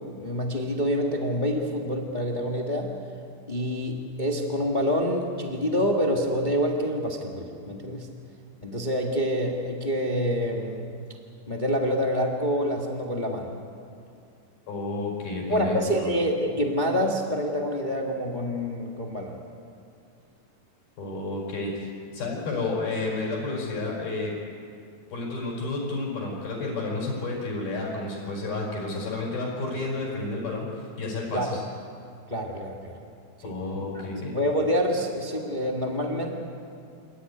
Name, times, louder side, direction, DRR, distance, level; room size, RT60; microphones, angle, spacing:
voice 1, 0.1-2.9 3.5-8.1 8.6-10.8 11.5-13.5 15.5-19.4 31.3-31.5 32.3-33.0 33.4-33.5 33.9-34.0 34.3-36.4, equal, 30° left, 0 dB, 0.8 m, -27 dB
voice 2, 14.7-16.1 21.0-24.3 25.1-30.7 31.0-31.6 33.4-34.4, left 2 dB, 75° left, -3 dB, 6.7 m, -31 dB
27.5 x 14.5 x 9.6 m, 2.4 s
omnidirectional pair, 4.3 m